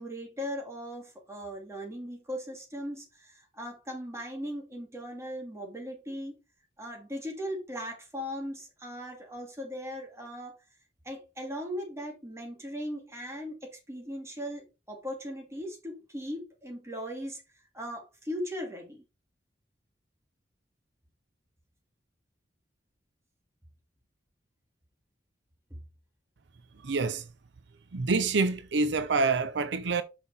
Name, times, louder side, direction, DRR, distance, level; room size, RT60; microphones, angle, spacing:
voice 1, 0.0-6.3 6.8-10.5 11.0-17.4 17.7-19.0 25.7-25.8, equal, 15° right, 2.6 m, -38 dB
voice 2, 26.8-27.3 27.9-30.0, right 4 dB, 80° right, 0.6 m, -27 dB
5.8 x 5.8 x 4.2 m
head